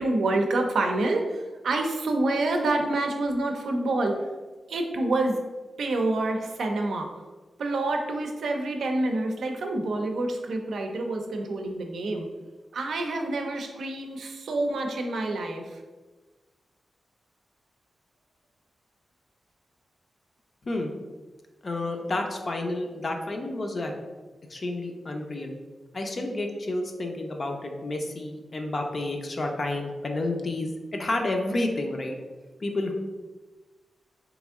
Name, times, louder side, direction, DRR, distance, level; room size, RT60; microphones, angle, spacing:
voice 1, 0.0-4.2 4.7-5.4 5.8-7.1 7.6-12.3 12.7-15.8, right 2 dB, 80° right, 3 dB, 0.5 m, -27 dB
voice 2, 21.6-23.9 24.5-25.6 25.9-32.2 32.6-32.9, left 2 dB, 40° left, 3 dB, 0.5 m, -30 dB
3.5 x 3.0 x 3.5 m, 1.3 s
wide cardioid pair, 140°, 0 cm